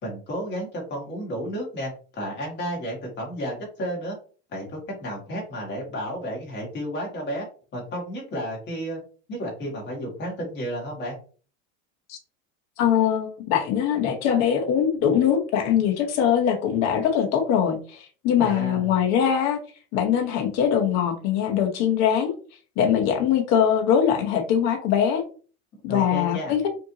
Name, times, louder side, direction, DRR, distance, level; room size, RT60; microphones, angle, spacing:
voice 1, 0.0-4.2 4.5-7.5 7.7-9.0 9.3-11.2 18.4-18.9 25.9-26.6, equal, 30° left, -2 dB, 2.3 m, -32 dB
voice 2, 12.8-19.6 19.9-22.3 22.8-25.2 25.8-26.6, left 8 dB, 50° left, 4 dB, 1.0 m, -22 dB
5.2 x 2.8 x 2.9 m, 0.39 s
supercardioid pair, 150°, 35 cm